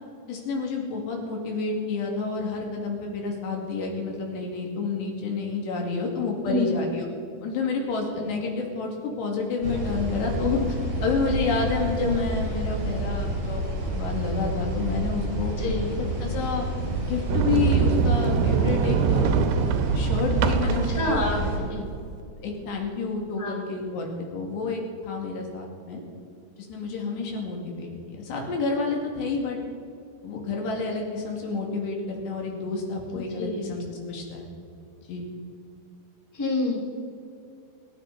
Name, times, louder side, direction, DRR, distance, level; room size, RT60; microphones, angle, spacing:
voice 1, 0.3-7.1 7.4-10.6 11.0-13.6 13.9-15.5 16.0-16.7 17.0-21.2 22.4-26.0 26.6-29.6 30.2-34.5 35.1-35.3, left 4 dB, 90° left, 0 dB, 4.6 m, -29 dB
sound 1, 9.6-21.6, right 1 dB, 60° right, 5.7 m, -29 dB
voice 2, 15.6-15.9 20.8-21.4 21.7-21.8 23.4-23.5 33.4-33.7 36.3-36.8, left 2 dB, 5° left, -1 dB, 1.8 m, -27 dB
Sliding door, 17.3-22.2, right 7 dB, 85° right, 2.8 m, -24 dB
28.0 x 9.8 x 4.2 m, 2.6 s
omnidirectional pair, 4.8 m